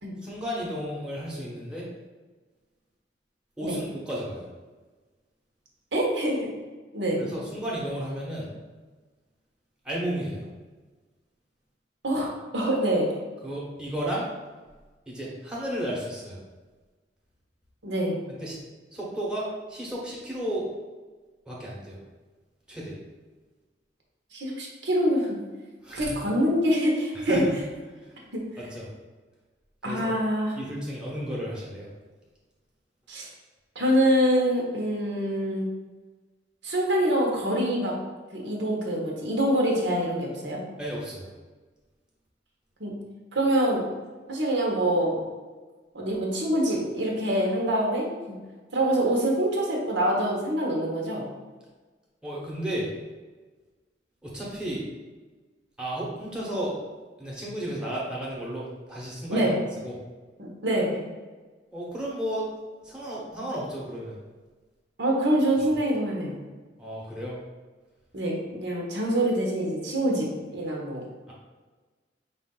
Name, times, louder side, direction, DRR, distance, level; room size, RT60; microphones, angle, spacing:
voice 1, 0.2-1.9 3.6-4.5 7.2-8.5 9.8-10.5 13.4-14.3 15.1-16.4 18.3-18.6 18.9-20.7 21.5-22.0 22.7-23.0 25.8-26.2 27.1-27.6 28.0-28.2 28.6-28.8 29.8-30.1 30.6-31.9 40.8-41.3 52.2-52.9 54.2-54.9 55.8-56.7 57.2-59.9 61.7-62.5 62.8-64.2 66.8-67.3 71.3-71.4, right 1 dB, 5° right, -6 dB, 1.0 m, -33 dB
voice 2, 5.9-6.5 6.9-7.2 12.0-13.1 17.8-18.2 24.3-25.4 25.9-27.4 28.3-28.4 29.8-30.5 33.1-33.3 33.7-35.7 36.6-38.0 38.3-40.6 42.8-43.0 43.3-43.8 44.3-45.2 45.9-48.1 48.7-51.2 59.3-59.5 60.4-61.1 65.0-66.4 68.1-71.0, right 1 dB, 80° right, -2 dB, 1.1 m, -25 dB
5.0 x 2.5 x 3.8 m, 1.3 s
head